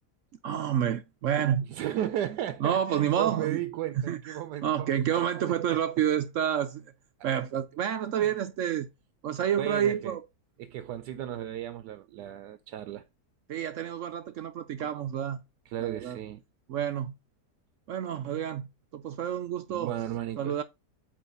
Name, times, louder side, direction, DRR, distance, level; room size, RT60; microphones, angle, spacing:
voice 1, 0.4-1.7 2.6-3.6 4.1-6.8 7.2-8.9 9.2-10.2 13.5-15.4 15.8-16.2 16.7-17.1 17.9-18.7 18.9-19.9 20.4-20.6, right 9 dB, 65° right, 0.8 m, -29 dB
voice 2, 1.6-4.7 5.5-5.6 8.2-8.3 9.5-10.2 10.6-13.1 15.7-16.4 19.7-20.6, right 12 dB, 85° right, 1.2 m, -34 dB
8.6 x 2.9 x 5.3 m
omnidirectional pair, 1.7 m